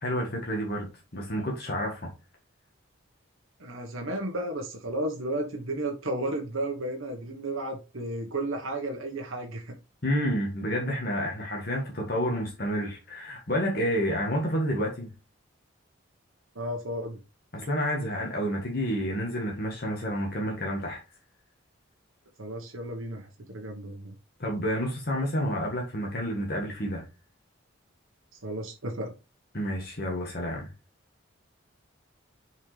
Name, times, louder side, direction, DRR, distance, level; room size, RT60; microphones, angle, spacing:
voice 1, 0.0-2.1 10.0-15.1 17.5-21.0 24.4-27.0 29.5-30.7, equal, 50° left, 1.5 m, -29 dB
voice 2, 3.6-9.7 16.5-17.2 22.4-24.1 28.3-29.1, right 1 dB, 80° right, 1.3 m, -33 dB
7.0 x 4.5 x 3.3 m
head